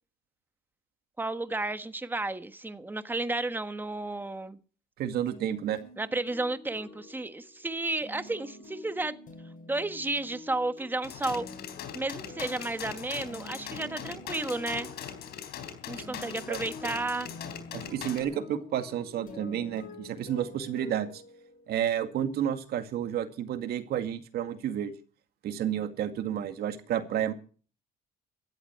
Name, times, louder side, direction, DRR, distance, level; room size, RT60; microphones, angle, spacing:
voice 1, 1.2-4.6 6.0-9.1 9.7-11.5 11.9-14.9 15.9-17.3, right 2 dB, 10° right, 10 dB, 1.4 m, -32 dB
voice 2, 5.0-5.8 16.0-16.1 16.5-16.6 17.7-21.2 21.7-24.9 25.4-27.3, right 10 dB, 70° right, 8 dB, 2.2 m, -31 dB
sound 1, 5.3-22.0, left 2 dB, 50° left, 7.7 m, -48 dB
sound 2, 11.0-18.2, left 9 dB, 75° left, 3.8 m, -41 dB
16.5 x 13.5 x 4.6 m, 0.39 s
cardioid pair, 110°, 17 cm